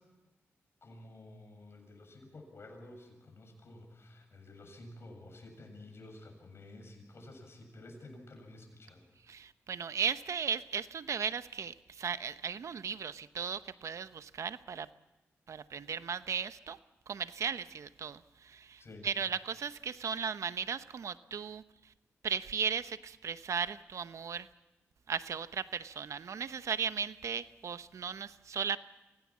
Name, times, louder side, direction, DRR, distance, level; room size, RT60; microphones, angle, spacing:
voice 1, 0.8-9.0 18.8-19.1, left 2 dB, 55° left, 4 dB, 7.5 m, -51 dB
voice 2, 9.3-14.9 15.5-16.8 17.1-18.2 18.5-21.6 22.2-24.5 25.1-28.8, right 6 dB, 75° right, 13 dB, 0.9 m, -36 dB
25.0 x 17.0 x 7.4 m, 1.0 s
cardioid pair, 60°, 5 cm